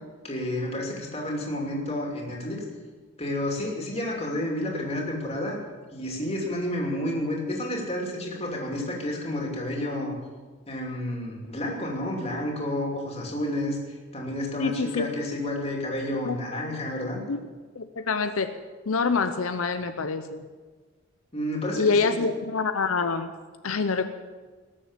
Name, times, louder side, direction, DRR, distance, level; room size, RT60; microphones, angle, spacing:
voice 1, 0.2-2.6 3.2-5.6 5.9-10.1 10.7-13.8 14.1-17.2 21.3-22.0, left 1 dB, 30° left, -1 dB, 2.9 m, -30 dB
voice 2, 14.6-15.1 16.2-16.4 17.3-17.4 17.8-18.5 18.9-20.4 21.7-23.3 23.6-24.1, left 4 dB, 85° left, 8 dB, 0.7 m, -26 dB
19.0 x 7.3 x 7.4 m, 1.4 s
head